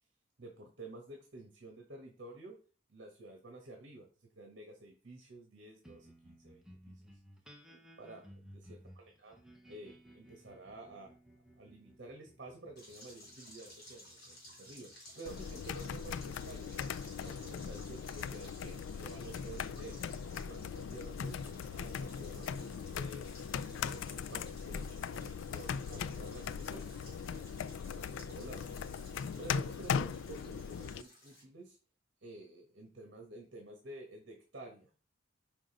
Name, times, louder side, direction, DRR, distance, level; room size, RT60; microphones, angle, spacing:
voice 1, 0.4-2.6 2.9-4.1 4.3-7.1 7.7-9.3 9.7-11.1 11.6-16.9 17.2-20.0 20.5-23.2 23.7-27.5 27.8-28.6 29.4-31.8 32.2-34.9, right 2 dB, 60° right, 2 dB, 1.3 m, -51 dB
sound 1, 5.8-20.5, equal, 5° right, 0.9 m, -60 dB
sound 2, 12.8-31.4, left 1 dB, 55° left, 3.5 m, -56 dB
sound 3, 15.3-31.0, left 6 dB, 75° left, 0.3 m, -39 dB
5.3 x 5.0 x 3.9 m, 0.37 s
head